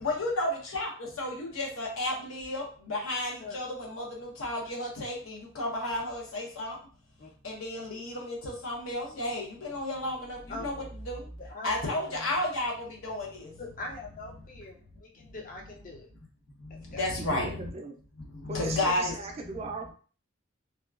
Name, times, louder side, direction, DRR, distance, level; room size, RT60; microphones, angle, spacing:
voice 1, 0.0-6.8 7.4-11.3 11.6-13.5 16.6-17.7 18.3-19.1 19.4-19.6, left 1 dB, 80° left, -1 dB, 0.9 m, -33 dB
voice 2, 13.6-16.1 16.7-17.0, left 2 dB, 40° left, 1 dB, 0.5 m, -42 dB
voice 3, 17.2-18.0 18.5-19.9, right 2 dB, 30° right, 4 dB, 0.3 m, -38 dB
2.8 x 2.2 x 2.3 m, 0.40 s
head